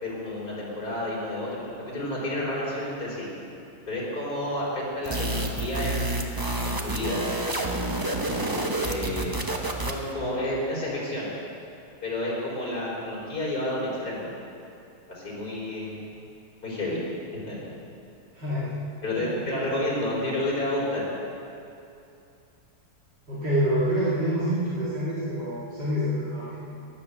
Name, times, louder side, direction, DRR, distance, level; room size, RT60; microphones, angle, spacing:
voice 1, 0.0-3.3 3.9-6.3 6.6-7.2 8.8-9.4 9.9-11.3 12.0-14.3 15.1-16.0 16.6-17.0 17.5-17.6 19.0-21.0, left 1 dB, 55° left, -5 dB, 4.8 m, -30 dB
sound 1, 5.0-10.1, right 2 dB, 15° right, 0.8 m, -29 dB
voice 2, 18.3-18.8 19.2-19.5 23.3-26.6, equal, 70° right, -9 dB, 3.0 m, -27 dB
16.5 x 10.5 x 6.8 m, 2.7 s
omnidirectional pair, 1.9 m